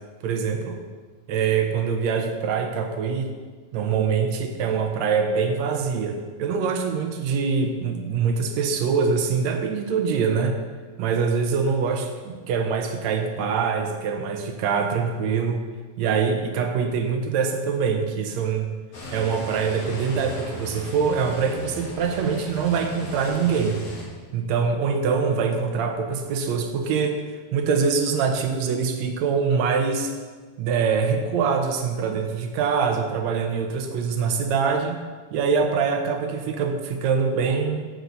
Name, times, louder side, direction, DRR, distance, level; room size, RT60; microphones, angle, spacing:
voice 1, 0.2-0.8 1.3-3.3 3.7-10.6 11.0-15.6 16.0-18.7 19.1-23.8 24.3-27.2 27.5-30.1 30.6-35.0 35.3-37.9, right 5 dB, 70° right, 4 dB, 2.2 m, -24 dB
sound 1, 18.9-24.0, left 1 dB, 55° left, 3.0 m, -37 dB
16.0 x 7.8 x 4.0 m, 1.5 s
omnidirectional pair, 3.5 m